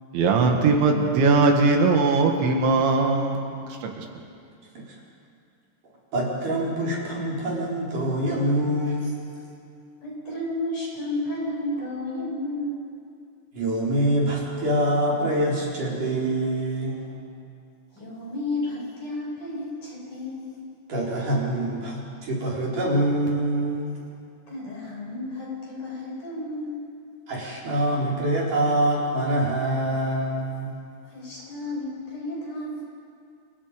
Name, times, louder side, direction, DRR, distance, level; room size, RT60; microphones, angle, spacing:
voice 1, 0.1-4.2, right 3 dB, 80° right, 2 dB, 4.4 m, -20 dB
voice 2, 6.1-9.1 13.5-17.2 20.9-23.9 27.3-30.7, right 1 dB, 45° right, -4 dB, 5.8 m, -25 dB
voice 3, 10.0-12.8 17.9-20.6 24.5-26.8 31.0-32.8, left 1 dB, 45° left, -4 dB, 8.9 m, -32 dB
29.5 x 29.5 x 5.3 m, 2.4 s
omnidirectional pair, 5.2 m